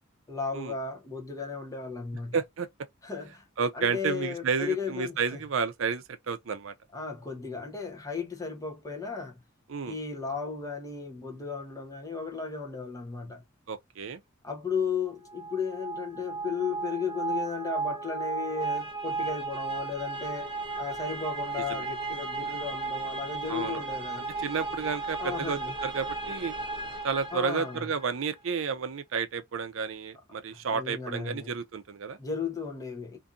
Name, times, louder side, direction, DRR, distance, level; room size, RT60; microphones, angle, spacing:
voice 1, 0.3-2.4 3.0-3.4 3.7-5.4 6.9-9.4 9.8-13.4 14.4-24.2 25.2-25.7 27.3-27.9 30.7-31.5 32.2-33.2, left 5 dB, 15° left, 0.7 m, -35 dB
voice 2, 2.3-2.7 3.6-6.7 9.7-9.9 13.7-14.2 21.7-21.9 23.5-23.8 24.4-26.5 27.0-32.2, right 5 dB, 70° right, 0.5 m, -31 dB
sound 1, 15.3-28.1, right 3 dB, 25° right, 0.8 m, -35 dB
2.6 x 2.5 x 2.4 m
head